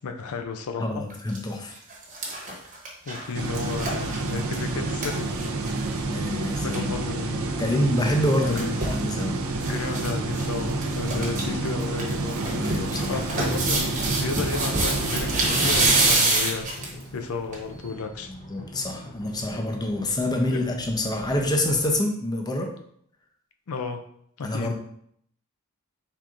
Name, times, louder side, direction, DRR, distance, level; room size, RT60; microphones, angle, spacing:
voice 1, 0.0-1.0 3.1-5.3 6.6-7.5 8.4-8.8 9.7-12.4 13.1-16.7 17.1-18.3 20.5-20.6 23.7-24.0 24.4-24.7, left 4 dB, 80° left, 6 dB, 0.5 m, -33 dB
voice 2, 0.8-1.7 6.1-7.0 7.6-9.4 11.1-11.5 12.6-13.2 18.3-22.7 24.4-24.8, left 1 dB, 20° left, 2 dB, 0.5 m, -27 dB
sound 1, 1.1-1.4 1.8-6.0 6.3-6.4 6.6-6.8 8.1-9.0 9.6-10.1 10.4-10.5 10.8-11.4 11.8-17.0 17.5-17.6, right 2 dB, 40° right, 1.1 m, -26 dB
sound 2, 3.3-16.2, right 2 dB, 70° right, 0.5 m, -29 dB
sound 3, 7.6-22.0, left 1 dB, 40° left, 1.4 m, -43 dB
4.5 x 3.6 x 2.5 m, 0.67 s
head